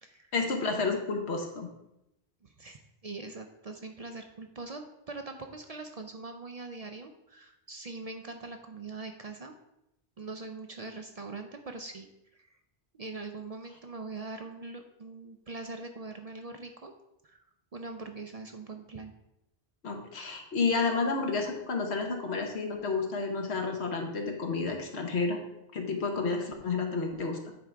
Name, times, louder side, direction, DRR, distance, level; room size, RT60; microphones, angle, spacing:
voice 1, 0.3-1.7 19.8-25.4 25.7-27.5, left 4 dB, 85° left, 4 dB, 1.4 m, -30 dB
voice 2, 2.4-9.5 10.2-12.6 12.9-16.9 17.2-17.4 17.7-19.1, right 3 dB, 45° right, 5 dB, 0.6 m, -42 dB
9.3 x 3.7 x 4.5 m, 0.86 s
omnidirectional pair, 1.1 m